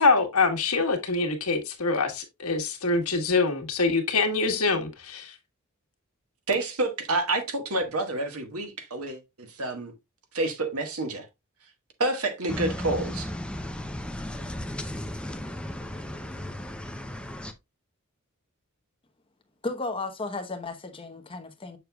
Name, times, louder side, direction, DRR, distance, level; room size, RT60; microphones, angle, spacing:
voice 1, 0.0-5.3, left 3 dB, 85° left, 1.6 m, -24 dB
voice 2, 6.5-9.9 10.3-11.2 12.0-13.3, right 2 dB, 85° right, 1.5 m, -28 dB
sound 1, 12.5-17.5, left 1 dB, 5° left, 0.6 m, -35 dB
voice 3, 19.6-21.8, left 3 dB, 25° left, 1.0 m, -34 dB
6.6 x 6.6 x 2.3 m
head